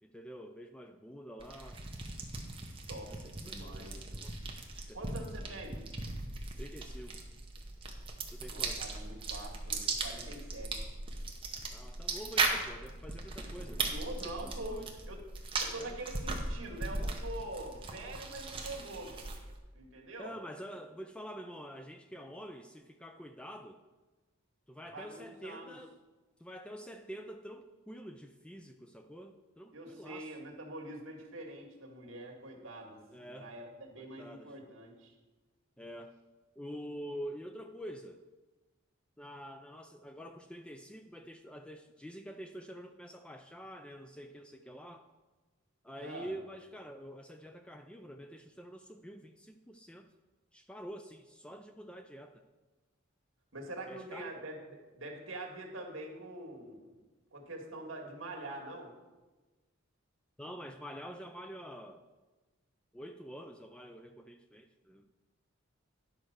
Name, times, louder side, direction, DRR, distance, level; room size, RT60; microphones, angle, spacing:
voice 1, 0.0-1.9 3.1-4.4 4.7-5.2 6.6-7.1 8.3-8.8 11.7-13.8 14.4-14.9 15.8-16.0 20.2-23.8 24.7-26.0 26.4-30.3 33.1-33.5 34.0-34.6 35.8-36.1 36.6-38.2 39.2-45.0 45.8-50.1 50.5-52.4 53.9-54.3 60.4-62.0 62.9-65.0, equal, 5° left, 6 dB, 0.3 m, -47 dB
sound 1, 1.4-19.6, right 3 dB, 25° right, 0.9 m, -38 dB
voice 2, 2.9-3.9 4.9-5.8 8.5-11.0 13.9-14.8 15.1-15.2 15.6-19.2 19.7-20.3 24.9-25.7 29.7-35.1 46.0-46.3 53.5-57.0 57.3-58.9, right 2 dB, 65° right, 1 dB, 1.8 m, -44 dB
10.5 x 4.4 x 6.5 m, 1.2 s
head